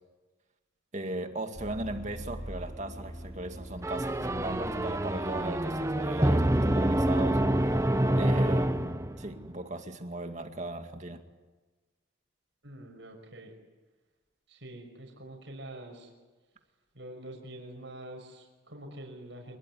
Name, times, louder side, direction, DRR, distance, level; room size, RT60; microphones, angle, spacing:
voice 1, 0.9-7.4 8.2-11.2, right 2 dB, 35° right, 6 dB, 2.2 m, -37 dB
Vehicle, 1.5-8.9, equal, 20° left, 6.0 m, -44 dB
sound 1, 3.8-9.4, right 1 dB, 15° right, 0.8 m, -27 dB
voice 2, 12.6-13.5 14.5-16.1 16.9-19.6, right 1 dB, 65° right, 1 dB, 5.8 m, -45 dB
27.0 x 21.5 x 9.7 m, 1.2 s
head